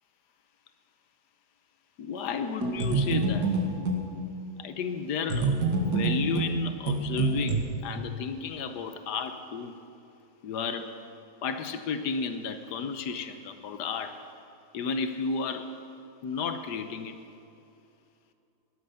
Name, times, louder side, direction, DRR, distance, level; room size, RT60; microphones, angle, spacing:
voice 1, 2.0-3.5 4.6-5.6 5.9-9.8 10.4-10.9 11.4-14.2 14.7-15.8 16.2-17.2, left 5 dB, 80° left, 8 dB, 1.4 m, -33 dB
sound 1, 2.6-4.1 5.3-7.6, right 3 dB, 85° right, 2.3 m, -26 dB
17.0 x 12.0 x 5.6 m, 2.7 s
omnidirectional pair, 1.8 m